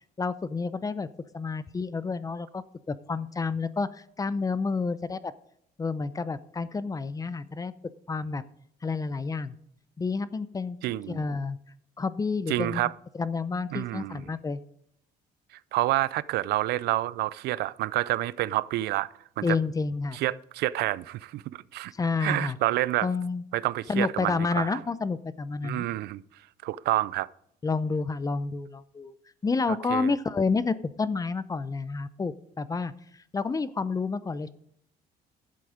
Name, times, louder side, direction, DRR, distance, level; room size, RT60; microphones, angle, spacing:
voice 1, 0.2-1.1 1.3-5.3 5.8-7.7 8.1-8.4 8.8-9.6 10.0-10.8 11.1-11.6 12.0-12.8 13.1-14.6 19.4-20.2 22.0-22.6 23.0-23.4 23.9-25.9 27.6-29.1 29.4-32.9 33.3-34.5, left 4 dB, 20° left, 0.6 m, -29 dB
voice 2, 10.8-11.2 12.5-12.9 13.7-14.2 15.7-19.1 19.4-19.6 20.1-21.9 22.2-23.1 23.5-24.8 25.6-26.2 26.6-27.3 29.9-30.1, right 16 dB, 75° right, 0.4 m, -28 dB
11.5 x 7.7 x 5.0 m
cardioid pair, 110°, 17 cm